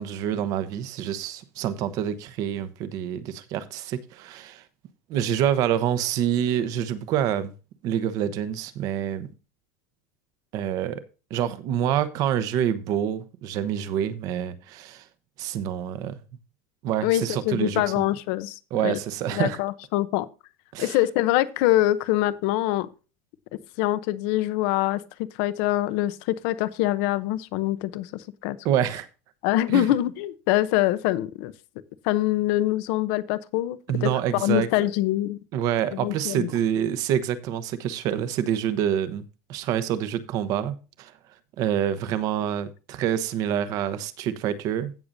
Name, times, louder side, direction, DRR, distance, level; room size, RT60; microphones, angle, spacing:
voice 1, 0.0-4.6 5.1-7.5 7.8-9.3 10.5-11.0 11.3-15.0 15.4-16.2 16.8-18.0 18.7-19.6 20.7-21.0 28.6-29.1 29.7-29.9 33.9-34.7 35.5-39.2 39.5-41.1 41.6-45.0, right 10 dB, 40° right, 1.0 m, -27 dB
voice 2, 17.0-19.0 19.3-20.3 20.8-22.9 23.8-25.0 25.4-28.6 29.4-31.5 32.0-35.4 35.9-36.5, left 15 dB, 55° left, 0.8 m, -24 dB
16.5 x 6.7 x 2.7 m
cardioid pair, 170°, 9 cm